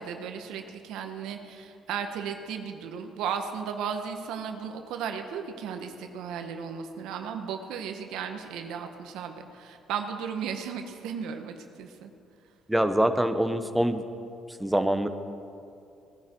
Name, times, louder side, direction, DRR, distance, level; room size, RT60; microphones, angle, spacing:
voice 1, 0.0-12.1, right 7 dB, 85° right, 6 dB, 1.1 m, -35 dB
voice 2, 12.7-14.0 14.5-15.1, right 1 dB, 5° right, 8 dB, 0.9 m, -24 dB
18.5 x 11.0 x 4.5 m, 2.5 s
cardioid pair, 100°, 0 cm